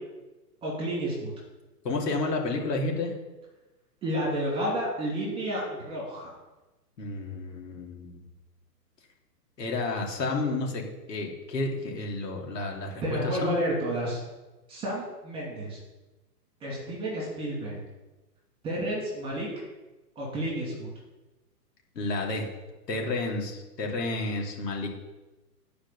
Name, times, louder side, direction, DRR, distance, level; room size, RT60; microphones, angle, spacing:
voice 1, 0.6-1.3 4.0-6.3 13.0-14.2 14.7-15.8 16.6-17.8 18.6-19.5 20.2-20.9, right 1 dB, 10° right, -4 dB, 2.4 m, -31 dB
voice 2, 1.8-3.1 7.0-8.2 9.6-10.8 11.1-13.5 21.9-22.5 22.9-24.9, left 3 dB, 80° left, 0 dB, 3.0 m, -31 dB
10.0 x 5.1 x 6.8 m, 1.1 s
hypercardioid pair, 155°, 48 cm